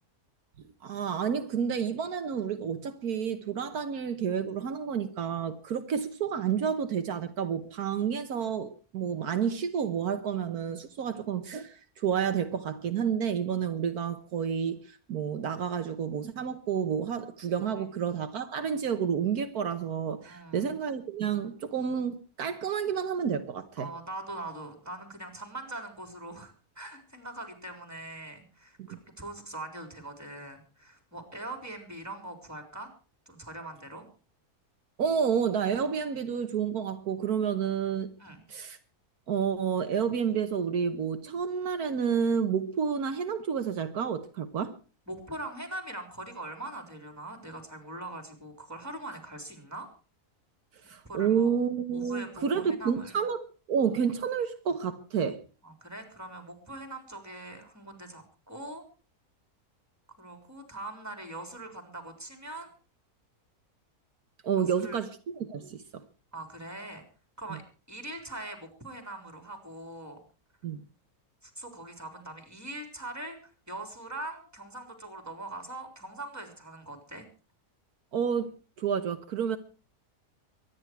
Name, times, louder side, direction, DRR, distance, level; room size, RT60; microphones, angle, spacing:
voice 1, 0.8-23.9 28.8-29.0 35.0-38.1 38.5-38.8 39.3-44.7 50.9-55.4 64.4-66.0 67.5-67.6 70.6-70.8 78.1-79.6, right 7 dB, 80° right, 1.6 m, -30 dB
voice 2, 20.2-20.7 23.8-32.9 33.3-34.1 38.2-38.4 45.1-49.9 51.0-51.5 51.9-53.2 55.6-58.8 60.2-62.7 64.6-65.0 66.3-67.0 67.4-67.6 67.9-70.2 71.4-77.3, right 2 dB, 10° right, 4.1 m, -42 dB
23.5 x 11.0 x 4.6 m
omnidirectional pair, 1.6 m